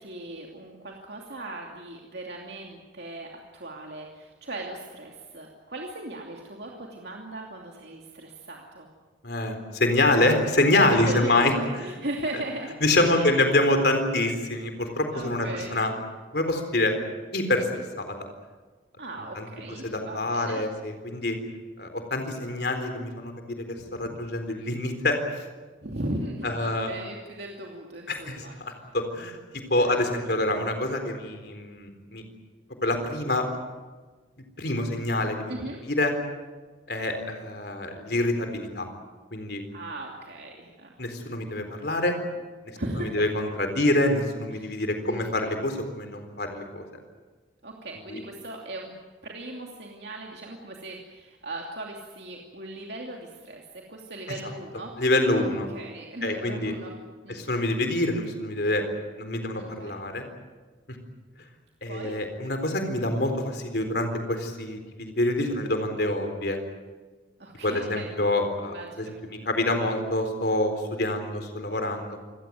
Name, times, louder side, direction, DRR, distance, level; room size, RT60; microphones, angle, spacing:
voice 1, 0.0-8.9 10.8-12.8 13.1-13.5 14.8-15.8 19.0-20.6 23.8-24.3 25.8-28.9 29.8-30.0 35.5-35.8 39.7-41.0 42.7-43.2 44.5-44.8 45.1-45.3 47.6-48.9 49.2-53.6 53.9-54.9 55.3-56.9 57.2-57.5 59.5-59.9 61.8-62.2 67.4-68.2 68.6-69.1, right 1 dB, 60° right, 0 dB, 2.7 m, -38 dB
voice 2, 9.2-11.5 12.8-15.9 16.3-17.0 17.3-18.3 19.4-19.5 19.8-21.4 21.8-23.3 23.7-25.2 26.4-26.9 28.1-32.2 32.8-33.5 34.6-35.5 35.8-36.1 36.9-38.9 39.3-39.6 41.0-42.2 43.0-46.8 55.0-55.7 56.2-56.7 57.3-58.8 59.2-60.3 61.8-66.6 67.6-72.2, left 2 dB, 55° left, 6 dB, 4.0 m, -26 dB
27.5 x 17.5 x 9.4 m, 1.4 s
head